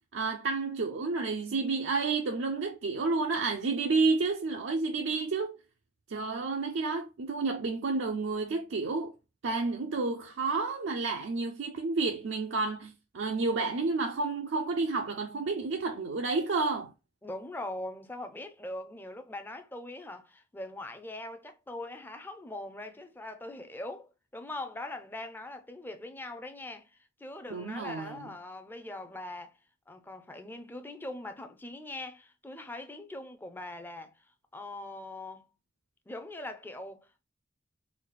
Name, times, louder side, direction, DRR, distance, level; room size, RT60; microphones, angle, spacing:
voice 1, 0.1-5.6 6.1-9.1 9.4-16.9 27.5-28.3, right 3 dB, 65° right, 0.4 m, -30 dB
voice 2, 17.2-26.9 27.2-29.5 29.9-34.1 34.5-35.4 36.1-37.2, left 2 dB, 10° left, 0.5 m, -41 dB
4.0 x 2.3 x 3.2 m
head